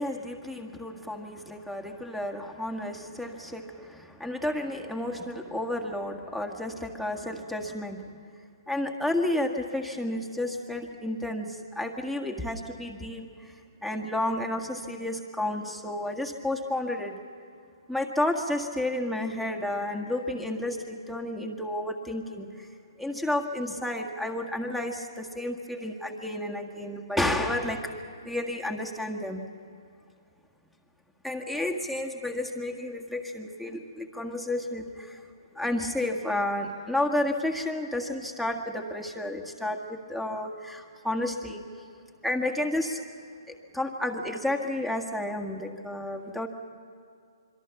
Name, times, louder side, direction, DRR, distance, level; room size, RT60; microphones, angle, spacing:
voice 1, 0.0-8.0 8.7-13.5 13.8-17.2 17.9-22.7 23.0-27.9 28.3-29.4 31.2-35.2 35.5-41.6 42.2-43.0 43.5-46.5, left 1 dB, ahead, 4 dB, 1.7 m, -31 dB
26.0 x 23.5 x 7.1 m, 2.3 s
hypercardioid pair, 140°, 3 cm